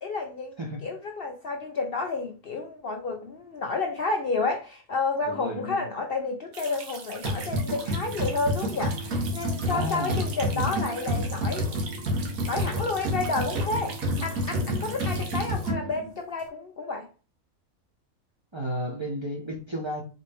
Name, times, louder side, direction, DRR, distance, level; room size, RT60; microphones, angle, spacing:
voice 1, 0.0-11.9 12.4-17.1, left 3 dB, 55° left, 0.7 m, -31 dB
voice 2, 5.3-5.8 9.6-10.2 10.5-10.8 14.5-14.9 18.5-20.0, equal, 25° right, 0.7 m, -33 dB
sound 1, 6.5-15.7, right 4 dB, 70° right, 1.3 m, -42 dB
sound 2, 7.2-16.1, equal, 90° right, 1.6 m, -29 dB
4.1 x 3.3 x 3.4 m
omnidirectional pair, 1.5 m